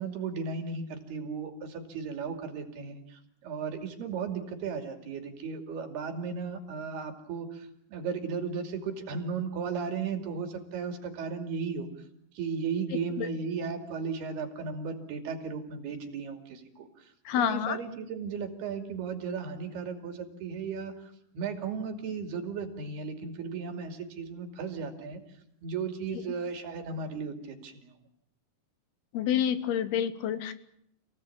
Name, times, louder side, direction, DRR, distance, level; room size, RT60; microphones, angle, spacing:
voice 1, 0.0-3.0 3.4-11.9 12.4-16.9 17.4-20.9 21.3-25.2 25.6-27.9, right 5 dB, 85° right, 5 dB, 4.7 m, -35 dB
voice 2, 17.3-17.8 29.1-30.5, left 9 dB, 80° left, 12 dB, 3.3 m, -28 dB
28.0 x 17.5 x 8.8 m, 0.73 s
omnidirectional pair, 4.5 m